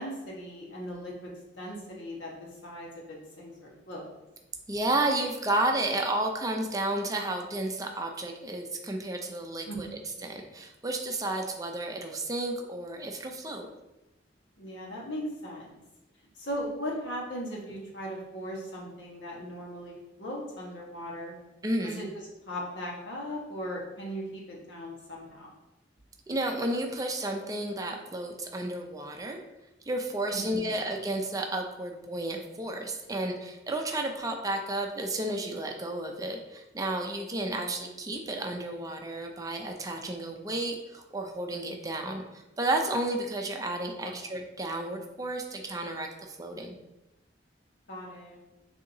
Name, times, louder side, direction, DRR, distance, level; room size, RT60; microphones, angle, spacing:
voice 1, 0.0-1.3 1.6-4.1 9.7-9.8 14.6-15.8 16.3-21.3 21.8-22.0 22.4-25.5 30.3-30.8 37.5-37.9 44.0-44.2 47.9-48.4, equal, 80° left, -3 dB, 1.3 m, -38 dB
voice 2, 4.7-9.9 10.2-13.7 21.6-22.0 26.3-29.4 29.9-46.7, right 1 dB, 20° right, 3 dB, 0.5 m, -32 dB
6.7 x 2.8 x 2.7 m, 0.98 s
head